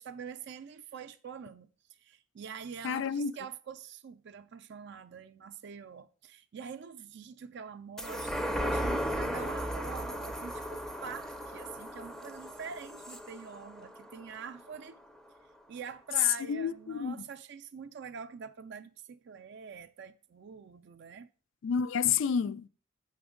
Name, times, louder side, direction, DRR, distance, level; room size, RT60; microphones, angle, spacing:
voice 1, 0.0-15.0 15.7-21.3, right 6 dB, 60° right, 0.4 m, -45 dB
voice 2, 2.8-3.3 16.5-17.2 21.6-22.7, left 6 dB, 70° left, 0.3 m, -30 dB
sound 1, 8.0-14.8 15.2-15.3, equal, 5° left, 0.5 m, -36 dB
7.0 x 5.9 x 3.7 m
head